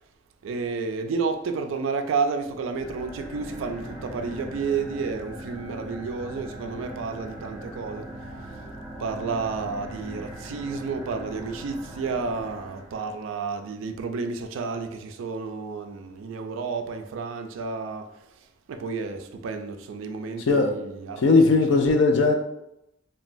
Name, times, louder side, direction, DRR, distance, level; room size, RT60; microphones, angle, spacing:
voice 1, 0.4-8.1 9.0-18.2 18.7-21.4, right 4 dB, 85° right, 0.3 m, -31 dB
sound 1, 2.7-13.2, right 1 dB, 5° right, 0.9 m, -40 dB
voice 2, 21.2-22.3, left 3 dB, 70° left, 0.4 m, -18 dB
3.0 x 2.2 x 2.5 m
head